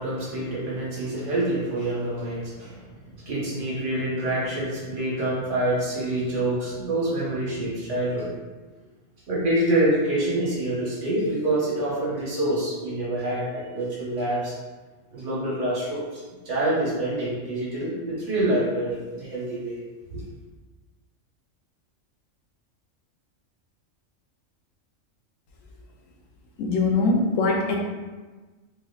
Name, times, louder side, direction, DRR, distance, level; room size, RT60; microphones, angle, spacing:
voice 1, 0.0-8.3 9.3-14.5 15.1-19.8 20.1-20.2, right 1 dB, 75° right, -6 dB, 1.2 m, -26 dB
voice 2, 26.6-27.8, left 3 dB, 85° left, -1 dB, 1.0 m, -22 dB
4.5 x 2.5 x 2.3 m, 1.3 s
omnidirectional pair, 1.3 m